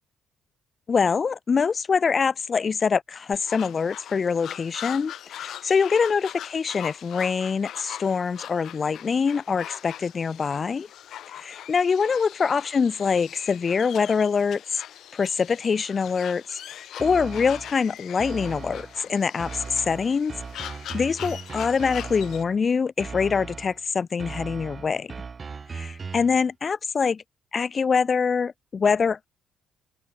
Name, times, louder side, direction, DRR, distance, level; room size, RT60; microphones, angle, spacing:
voice 1, 0.9-10.9 11.3-14.8 15.1-20.4 20.9-25.1 25.7-27.2 27.5-29.2, left 5 dB, 40° left, 1.4 m, -24 dB
sound 1, 3.3-22.4, left 11 dB, 75° left, 5.2 m, -41 dB
sound 2, 17.0-17.8 18.2-19.0 19.4-22.6 23.0-23.8 24.2-26.4, right 5 dB, 35° right, 2.2 m, -38 dB
open air
cardioid pair, 90°, 0 cm